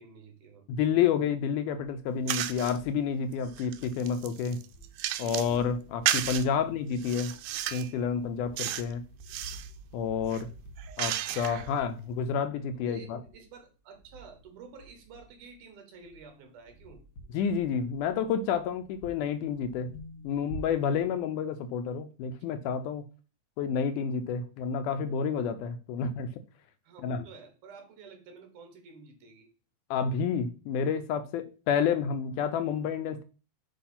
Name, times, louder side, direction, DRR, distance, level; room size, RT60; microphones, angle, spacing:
voice 1, 0.0-0.6 6.5-6.7 11.4-11.7 12.8-17.0 26.0-26.1 26.8-29.5, right 5 dB, 70° right, 5 dB, 2.7 m, -51 dB
voice 2, 0.7-4.6 5.2-7.3 7.7-9.0 9.9-10.5 11.0-13.2 17.3-19.9 20.2-23.0 23.6-26.3 27.0-27.2 29.9-33.2, left 7 dB, 80° left, 10 dB, 1.9 m, -29 dB
sound 1, 1.3-2.2 2.5-4.4 4.6-15.7 15.9-21.2, right 1 dB, 35° left, 1.4 m, -50 dB
sound 2, 2.3-2.8 3.3-5.6 6.1-6.5 7.0-7.9 8.6-8.9 9.2-9.7 10.2-11.7, right 12 dB, 90° right, 1.6 m, -33 dB
8.3 x 3.1 x 5.7 m, 0.37 s
omnidirectional pair, 3.8 m